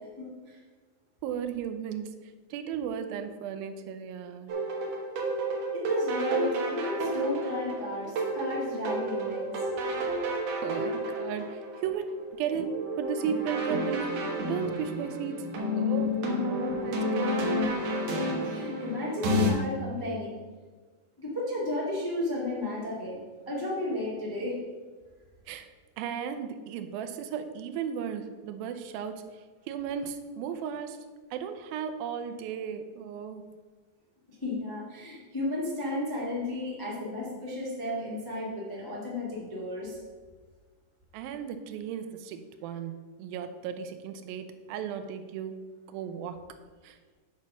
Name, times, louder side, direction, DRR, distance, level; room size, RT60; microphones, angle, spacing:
voice 1, 0.2-0.6 5.7-9.5 18.4-20.3 21.2-24.5 34.4-40.0, left 1 dB, 15° left, -6 dB, 0.6 m, -33 dB
voice 2, 1.2-4.5 10.6-14.2 14.5-15.5 15.7-16.2 16.8-17.5 25.5-25.7 26.0-33.5 41.1-46.4 46.8-47.0, right 7 dB, 85° right, 8 dB, 2.4 m, -35 dB
sound 1, 4.5-19.5, equal, 60° right, 2.0 m, -31 dB
8.6 x 4.2 x 6.3 m, 1.4 s
omnidirectional pair, 4.2 m